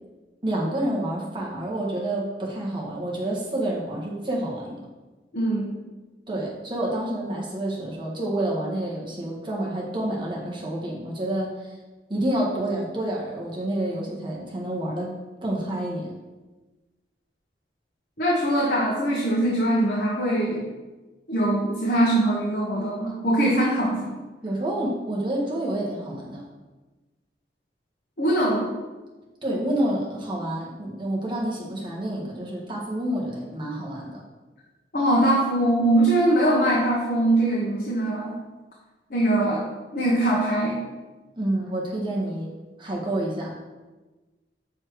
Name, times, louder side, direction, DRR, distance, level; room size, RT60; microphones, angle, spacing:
voice 1, 0.4-4.8 6.3-11.8 12.1-15.1 15.4-16.1 23.4-23.5 24.4-26.5 29.4-34.2 41.3-42.5 42.8-43.5, right 1 dB, 30° right, -3 dB, 1.5 m, -28 dB
voice 2, 5.3-5.7 18.2-20.6 21.3-24.1 28.2-28.7 34.9-38.4 39.1-40.8, right 1 dB, 55° left, -5 dB, 1.1 m, -22 dB
6.4 x 4.5 x 4.7 m, 1.2 s
head